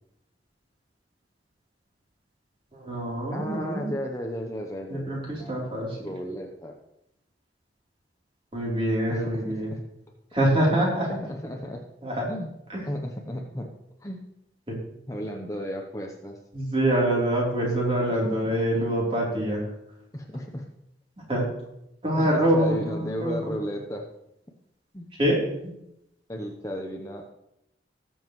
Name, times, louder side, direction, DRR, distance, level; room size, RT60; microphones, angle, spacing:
voice 1, 2.7-3.9 4.9-6.1 8.5-9.7 10.3-11.1 12.0-12.2 14.7-14.8 16.5-19.7 21.3-21.5 22.0-23.5 25.2-25.7, right 1 dB, 30° right, -4 dB, 3.5 m, -25 dB
voice 2, 3.3-5.7 6.0-6.8 9.1-9.8 10.7-11.8 12.3-12.5 12.9-13.7 14.0-14.2 15.1-16.4 18.1-18.9 20.1-20.7 22.2-24.1 24.9-25.1 26.3-27.2, equal, 20° left, 2 dB, 0.8 m, -34 dB
18.5 x 7.2 x 3.1 m, 0.82 s
head